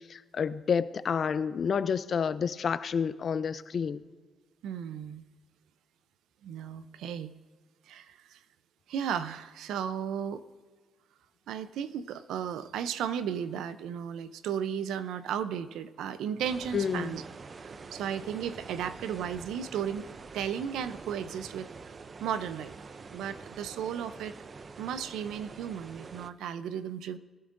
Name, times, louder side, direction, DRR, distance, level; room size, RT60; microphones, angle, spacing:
voice 1, 0.1-4.1 16.7-17.2, left 6 dB, 50° left, 15 dB, 0.5 m, -29 dB
voice 2, 4.6-5.2 6.4-7.3 7.9-8.4 8.9-10.4 11.5-17.2 17.6-21.7 22.2-22.7 23.1-24.3 24.8-27.2, right 8 dB, 85° right, 13 dB, 0.6 m, -35 dB
sound 1, 16.4-26.3, right 4 dB, 40° right, 0.5 m, -46 dB
19.5 x 12.5 x 2.6 m, 1.3 s
cardioid pair, 90°, 0 cm